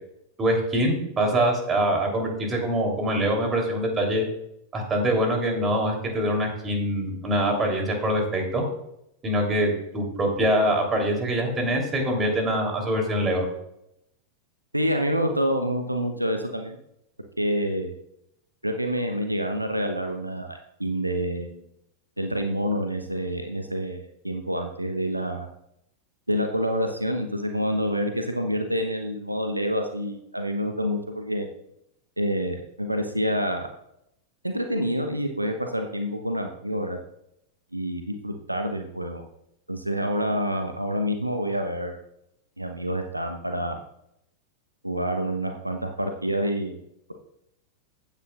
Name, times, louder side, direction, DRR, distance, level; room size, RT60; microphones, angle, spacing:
voice 1, 0.4-4.2 4.7-8.6 9.2-13.5, right 1 dB, 20° right, 1 dB, 3.4 m, -24 dB
voice 2, 14.7-16.8 17.4-17.9 18.6-21.6 22.2-25.5 26.3-31.5 32.2-33.7 34.4-37.0 37.7-39.2 39.7-42.0 42.6-43.8 44.8-46.7, equal, 85° right, 5 dB, 0.9 m, -27 dB
15.5 x 9.2 x 2.5 m, 0.78 s
figure-of-eight pair, 90°, 0 cm